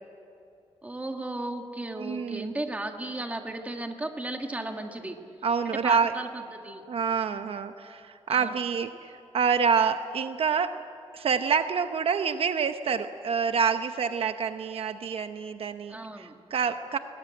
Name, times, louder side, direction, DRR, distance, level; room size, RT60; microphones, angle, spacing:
voice 1, 0.8-5.2 5.6-6.8 7.3-7.5 8.3-8.6 15.9-16.3, right 2 dB, 15° right, 4 dB, 1.6 m, -35 dB
voice 2, 2.0-2.5 5.4-6.1 6.9-10.8 11.1-17.0, right 6 dB, 65° right, 9 dB, 0.8 m, -27 dB
22.5 x 19.5 x 9.1 m, 2.6 s
wide cardioid pair, 155°, 11 cm